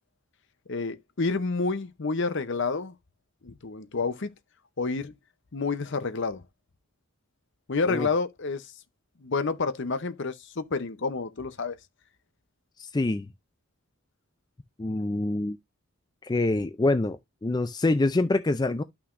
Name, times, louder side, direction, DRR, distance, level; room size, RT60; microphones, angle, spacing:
voice 1, 0.7-2.9 3.4-4.3 4.8-5.1 5.5-6.4 7.7-8.7 9.2-11.8, left 4 dB, 55° left, 0.7 m, -29 dB
voice 2, 12.8-13.3 14.8-15.6 16.2-18.8, left 2 dB, 20° left, 0.3 m, -26 dB
11.5 x 5.8 x 2.5 m
head